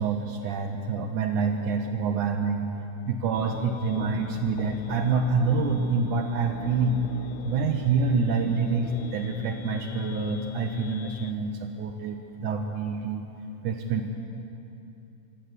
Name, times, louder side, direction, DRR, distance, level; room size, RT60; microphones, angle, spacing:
voice 1, 0.0-2.7 3.0-7.0 7.4-13.3 13.6-14.2, right 5 dB, 75° right, 4 dB, 2.6 m, -27 dB
sound 1, 3.3-11.3, left 13 dB, 80° left, 2.2 m, -37 dB
26.0 x 23.5 x 8.3 m, 2.9 s
omnidirectional pair, 3.6 m